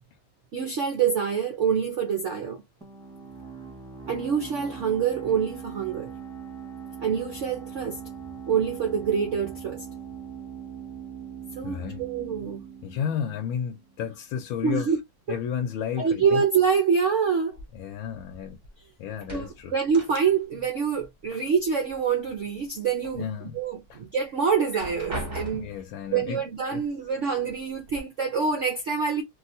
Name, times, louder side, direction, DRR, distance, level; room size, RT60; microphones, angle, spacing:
voice 1, 0.5-2.6 4.1-6.1 7.0-8.0 8.5-9.8 11.6-12.6 14.6-15.0 15.3-15.4 16.0-17.6 19.3-25.7 26.1-29.2, right 6 dB, 75° right, 0.7 m, -26 dB
sound 1, 2.8-14.2, right 7 dB, 5° left, 1.1 m, -41 dB
voice 2, 11.6-12.0 12.8-14.9 15.3-16.4 17.7-18.6 19.0-19.7 23.2-23.6 23.9-24.0 25.5-26.4 26.7-26.8, left 8 dB, 85° left, 1.4 m, -32 dB
sound 2, 17.5-18.8 19.1-20.7 21.0-22.0 22.4-23.2 23.6-23.7 24.5-25.9 26.9-27.0 27.4-28.0, right 2 dB, 35° right, 0.8 m, -39 dB
3.2 x 2.8 x 2.5 m
omnidirectional pair, 2.1 m